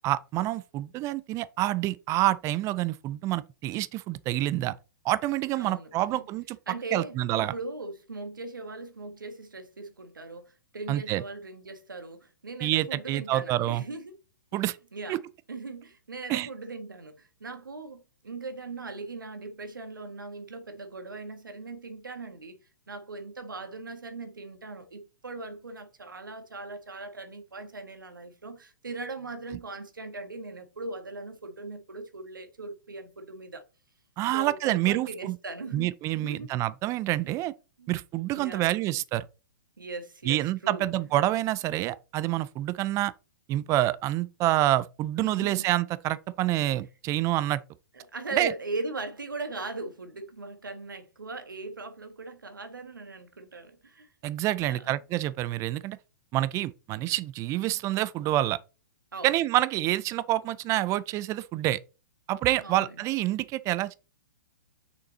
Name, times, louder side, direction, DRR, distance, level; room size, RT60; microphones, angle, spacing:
voice 1, 0.0-4.8 5.0-6.6 6.9-7.5 10.9-11.2 12.6-13.8 14.5-14.8 15.1-15.2 16.3-16.5 34.2-35.4 35.7-37.5 37.9-39.2 40.3-43.1 43.5-47.6 48.3-48.5 54.2-56.0 56.3-58.6 59.2-61.8 62.3-64.0, right 15 dB, 30° right, 0.5 m, -27 dB
voice 2, 5.5-6.3 6.7-14.2 14.5-14.6 14.9-15.2 15.5-22.6 22.9-33.6 34.3-36.5 37.2-37.3 37.8-37.9 38.4-38.8 39.8-41.1 45.2-45.7 47.9-54.1 54.6-55.0 59.1-59.4 62.6-63.1, right 3 dB, 85° right, 1.7 m, -39 dB
6.5 x 5.2 x 4.1 m
hypercardioid pair, 115°, 11 cm